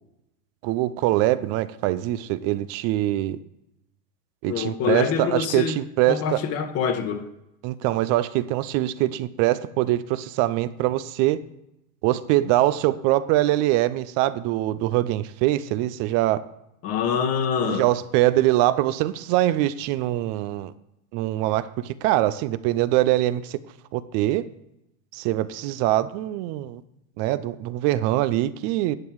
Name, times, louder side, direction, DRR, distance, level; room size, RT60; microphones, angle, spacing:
voice 1, 0.6-3.4 4.4-6.4 7.6-11.4 12.0-16.5 17.6-20.7 21.1-23.6 23.9-24.5 25.1-26.8 27.2-28.9, right 15 dB, 35° right, 0.5 m, -23 dB
voice 2, 4.5-5.8 6.1-7.3 16.8-17.9, left 7 dB, 35° left, 1.1 m, -25 dB
10.5 x 7.8 x 4.6 m
supercardioid pair, 130°, 44 cm